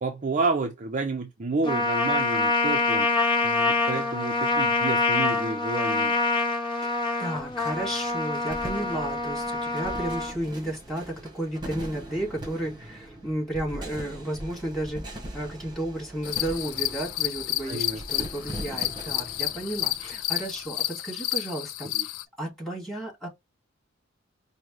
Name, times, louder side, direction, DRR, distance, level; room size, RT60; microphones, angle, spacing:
voice 1, 0.0-3.1 3.4-6.2 17.7-18.3 21.9-22.1, right 3 dB, 40° right, 0.5 m, -30 dB
Trumpet, 1.6-10.3, left 2 dB, 25° left, 0.7 m, -25 dB
voice 2, 6.8-22.1 22.4-23.3, right 1 dB, ahead, 2.2 m, -33 dB
sound 1, 7.3-20.9, right 1 dB, 20° right, 1.1 m, -41 dB
sound 2, 16.2-22.2, left 15 dB, 90° left, 0.3 m, -31 dB
5.1 x 2.2 x 3.1 m
head